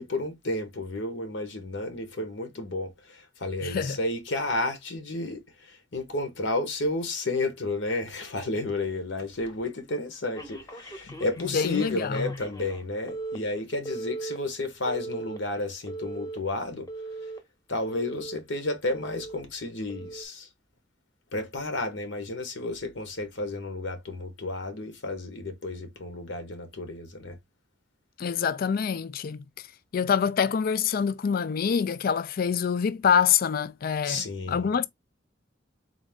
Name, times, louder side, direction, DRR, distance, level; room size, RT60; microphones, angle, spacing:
voice 1, 0.0-16.9 17.2-17.3 17.7-20.5 21.3-27.4 34.0-34.7, left 2 dB, 75° left, 1.1 m, -32 dB
voice 2, 3.6-4.0 11.5-12.3 28.2-29.4 29.9-34.9, left 7 dB, 50° left, 0.4 m, -26 dB
Telephone, 10.4-12.8 13.1-13.4 13.9-14.4 14.9-15.4 15.9-16.4 16.9-17.4 17.9-18.4 18.9-19.4 19.9-20.2, right 3 dB, 20° left, 0.9 m, -38 dB
4.1 x 2.6 x 3.5 m
head